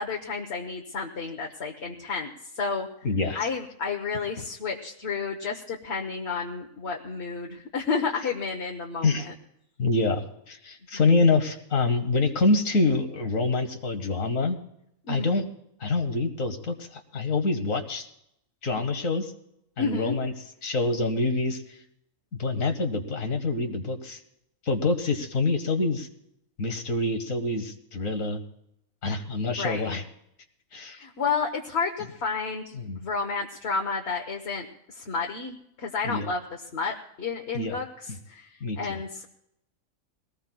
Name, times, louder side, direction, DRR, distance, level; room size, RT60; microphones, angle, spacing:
voice 1, 0.0-2.3 2.5-2.9 3.3-9.3 15.1-15.4 19.8-20.2 29.6-30.0 31.0-34.7 34.9-38.5 38.8-39.3, left 4 dB, 55° left, 1 dB, 1.3 m, -31 dB
voice 2, 3.0-3.5 9.0-9.3 9.8-14.6 15.1-15.5 15.8-18.1 18.6-19.3 19.8-20.3 20.6-21.6 22.4-24.2 24.6-26.1 26.6-28.4 29.0-30.0 30.7-31.0 32.7-33.0 36.0-36.2 37.5-37.8 38.6-39.0, left 3 dB, 80° left, 6 dB, 1.6 m, -26 dB
22.5 x 19.0 x 2.3 m, 0.77 s
omnidirectional pair, 1.4 m